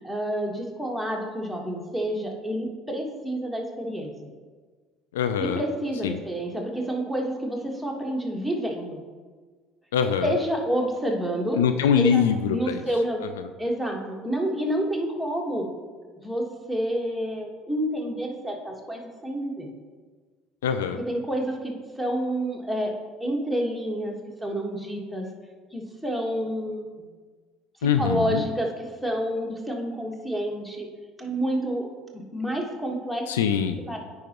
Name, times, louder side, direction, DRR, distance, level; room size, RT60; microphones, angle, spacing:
voice 1, 0.0-4.1 5.4-9.0 10.2-11.6 12.0-12.3 12.5-13.2 13.6-15.7 16.2-19.7 20.9-22.9 23.2-24.2 24.4-25.3 25.7-27.1 28.0-30.9 31.2-33.3 33.9-34.0, right 1 dB, ahead, 1 dB, 1.4 m, -29 dB
voice 2, 5.1-5.6 6.0-6.2 9.9-10.3 11.5-12.8 20.6-21.0 27.8-28.4 33.3-33.8, left 7 dB, 80° left, 9 dB, 0.3 m, -23 dB
9.2 x 4.8 x 3.0 m, 1.5 s
hypercardioid pair, 65°, 0 cm